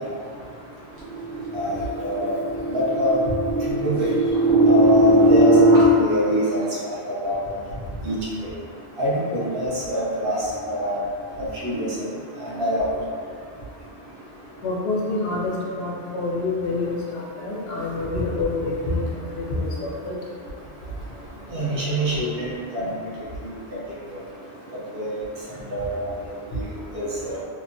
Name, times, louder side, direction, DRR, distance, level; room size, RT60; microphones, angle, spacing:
sound 1, 1.1-5.8, right 1 dB, 15° right, 0.6 m, -18 dB
voice 1, 2.0-2.4 2.7-3.2 3.7-4.1 4.7-6.6 6.8-6.9 7.2-7.3 8.0-8.2 9.0-10.4 10.7-11.0 11.6-11.9 12.4-12.9 21.5-22.3 22.7-22.9 24.9-25.2 25.7-25.9 26.5-26.6 26.9-27.4, right 1 dB, 65° right, -7 dB, 0.8 m, -24 dB
voice 2, 14.6-19.0 19.3-20.1, left 2 dB, 75° left, -5 dB, 0.8 m, -27 dB
2.9 x 2.0 x 2.5 m, 2.3 s
omnidirectional pair, 1.1 m